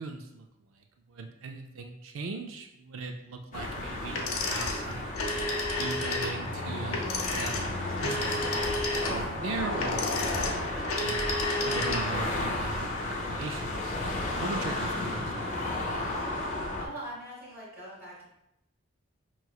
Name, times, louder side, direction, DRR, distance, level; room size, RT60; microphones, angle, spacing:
voice 1, 0.0-5.2 5.8-10.7 11.0-11.3 11.6-15.3, right 3 dB, 70° right, 4 dB, 0.4 m, -39 dB
sound 1, 3.5-16.8, left 2 dB, 35° left, 0.6 m, -33 dB
sound 2, 4.1-12.3, left 2 dB, 90° left, 0.8 m, -32 dB
voice 2, 16.8-18.3, right 1 dB, 40° right, -8 dB, 1.4 m, -42 dB
5.5 x 3.1 x 2.3 m, 0.83 s
head